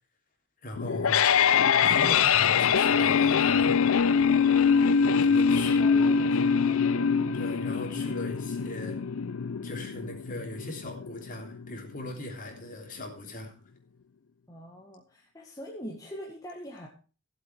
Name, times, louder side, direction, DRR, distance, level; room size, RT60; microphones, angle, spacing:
voice 1, 0.6-1.2 1.8-3.7 5.2-5.8 7.3-9.0 9.6-13.5, left 1 dB, 35° left, 1 dB, 3.3 m, -39 dB
sound 1, 0.8-11.8, left 6 dB, 65° left, 0.5 m, -24 dB
voice 2, 5.2-6.8 14.5-16.9, equal, 15° left, -2 dB, 1.7 m, -43 dB
16.0 x 7.8 x 4.7 m, 0.36 s
head